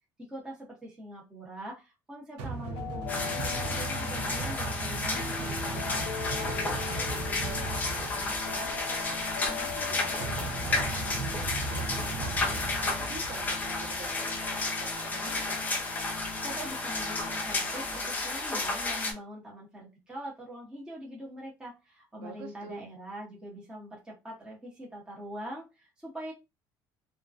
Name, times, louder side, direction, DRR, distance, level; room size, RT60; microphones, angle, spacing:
voice 1, 0.2-6.1 16.4-26.3, equal, 10° right, -4 dB, 0.8 m, -43 dB
sound 1, 2.4-14.3, right 3 dB, 75° right, 0.7 m, -38 dB
sound 2, 2.6-18.4, left 7 dB, 80° left, 0.5 m, -42 dB
sound 3, 3.1-19.1, left 3 dB, 20° left, 0.5 m, -32 dB
voice 2, 6.5-15.6 22.2-22.9, right 4 dB, 55° right, -3 dB, 1.1 m, -46 dB
2.4 x 2.2 x 2.4 m, 0.25 s
cardioid pair, 160°, 8 cm